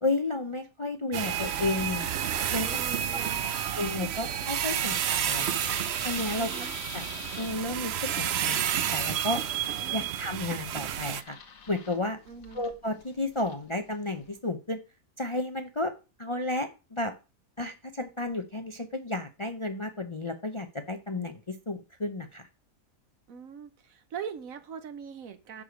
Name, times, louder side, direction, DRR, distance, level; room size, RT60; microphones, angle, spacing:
voice 1, 0.0-2.1 2.5-2.7 3.7-5.7 6.0-7.1 7.4-9.4 9.9-11.4 11.7-12.2 12.5-14.8 15.2-15.9 16.2-17.1 17.6-22.5, left 2 dB, 30° left, 7 dB, 0.5 m, -32 dB
sound 1, 1.1-11.2, right 9 dB, 60° right, 0.8 m, -30 dB
sound 2, 2.5-14.4, left 6 dB, 75° left, 1.6 m, -48 dB
voice 2, 2.6-3.6 6.4-6.7 9.8-10.1 12.3-12.6 23.3-25.6, right 7 dB, 75° right, 11 dB, 1.4 m, -42 dB
10.5 x 4.9 x 5.1 m, 0.31 s
omnidirectional pair, 1.5 m